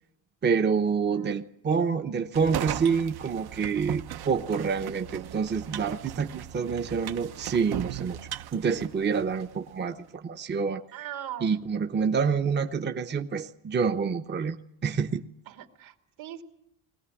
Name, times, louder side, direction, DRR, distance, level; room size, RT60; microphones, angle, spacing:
voice 1, 0.4-8.2 8.5-10.8 11.4-14.6 14.8-15.2, right 5 dB, 20° right, 6 dB, 0.8 m, -27 dB
voice 2, 1.0-1.4 10.9-11.6 15.5-16.4, right 11 dB, 70° right, 5 dB, 2.9 m, -40 dB
sound 1, 2.3-9.5, right 11 dB, 55° right, 0.8 m, -37 dB
21.5 x 18.0 x 9.8 m, 0.77 s
cardioid pair, 145°, 48 cm